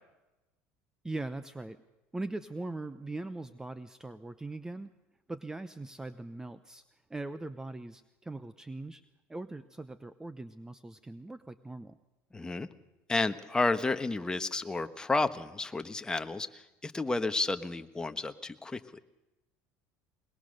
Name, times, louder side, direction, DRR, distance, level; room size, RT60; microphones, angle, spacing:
voice 1, 1.0-1.8 2.1-4.9 5.3-6.8 7.1-9.0 9.3-12.0, right 2 dB, 10° right, 13 dB, 0.8 m, -40 dB
voice 2, 12.3-12.7 13.1-18.8, left 3 dB, 15° left, 9 dB, 1.2 m, -31 dB
21.5 x 21.0 x 6.6 m, 1.0 s
supercardioid pair, 105°, 6 cm